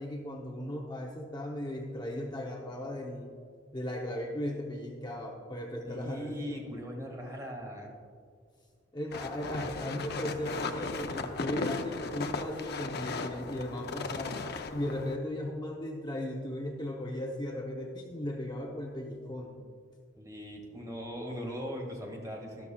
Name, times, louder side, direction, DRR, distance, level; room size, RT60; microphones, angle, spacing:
voice 1, 0.0-3.3 3.7-6.6 8.9-14.4 14.7-19.6, left 1 dB, 20° left, 0 dB, 0.7 m, -37 dB
voice 2, 5.9-7.9 20.2-22.7, equal, 20° right, 0 dB, 1.8 m, -39 dB
sound 1, 9.1-15.2, left 3 dB, 55° left, 0.6 m, -37 dB
13.0 x 12.5 x 2.3 m, 2.1 s
head